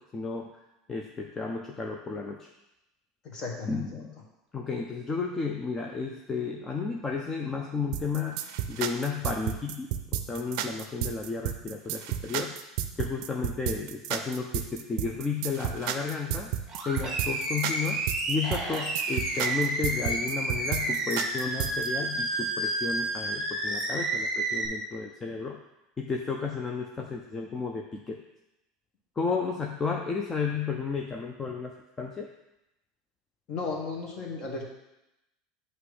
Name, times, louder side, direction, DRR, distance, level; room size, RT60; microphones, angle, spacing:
voice 1, 0.1-0.5 0.9-2.5 3.7-4.1 4.5-8.4 8.7-9.9 10.3-12.6 13.0-16.5 16.9-25.6 26.0-28.2 29.2-32.3, left 5 dB, 15° left, 1 dB, 0.4 m, -33 dB
voice 2, 3.2-4.0 33.5-34.6, left 4 dB, 35° left, 0 dB, 1.4 m, -35 dB
sound 1, 7.9-21.9, right 11 dB, 60° right, 0.5 m, -32 dB
Animal, 16.7-24.7, right 2 dB, 15° right, 1.3 m, -30 dB
7.9 x 3.0 x 4.9 m, 0.91 s
supercardioid pair, 160°, 2 cm